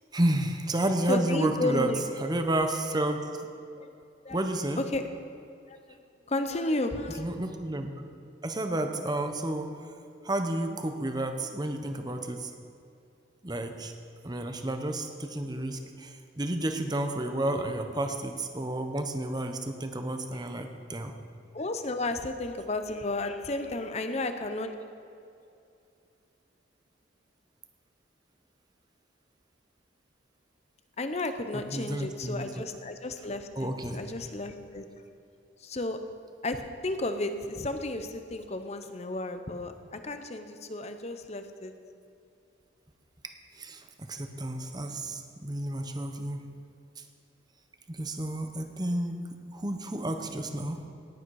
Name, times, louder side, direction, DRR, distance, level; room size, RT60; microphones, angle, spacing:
voice 1, 0.1-3.2 4.3-4.9 7.2-7.9 8.4-9.7 10.2-12.5 13.4-13.9 14.2-21.2 31.5-32.6 33.6-34.1 43.6-46.4 47.0-47.1 47.9-49.2 49.5-50.8, right 1 dB, 20° right, 6 dB, 0.8 m, -31 dB
voice 2, 1.1-2.0 3.8-3.9 4.2-4.4 4.8-5.0 5.7-6.0 6.3-7.3 21.5-24.7 31.0-34.8 35.6-36.0 36.4-41.7, left 2 dB, 35° left, 8 dB, 0.8 m, -33 dB
18.5 x 8.7 x 4.8 m, 2.6 s
head